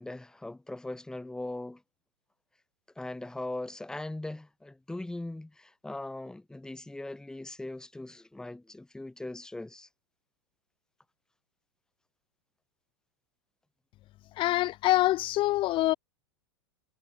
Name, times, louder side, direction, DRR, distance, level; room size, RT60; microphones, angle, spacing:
voice 1, 0.0-1.8 3.0-9.9, left 2 dB, 5° left, 1.0 m, -40 dB
voice 2, 14.4-15.9, left 16 dB, 35° left, 0.6 m, -25 dB
hypercardioid pair, 105°, 15 cm